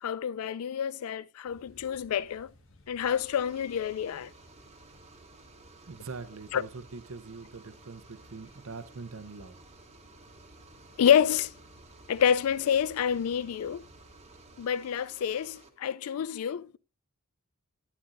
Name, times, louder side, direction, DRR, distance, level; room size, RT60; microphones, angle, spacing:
voice 1, 0.0-2.5 2.9-4.3 6.5-6.6 11.0-11.5 12.1-13.8 14.6-16.8, left 8 dB, 80° left, 0.4 m, -28 dB
sound 1, 1.4-14.6, left 1 dB, 60° left, 1.5 m, -59 dB
sound 2, 3.0-15.7, right 3 dB, 30° right, 1.1 m, -55 dB
voice 2, 5.9-9.6, right 4 dB, 70° right, 0.7 m, -43 dB
11.5 x 10.0 x 2.5 m
head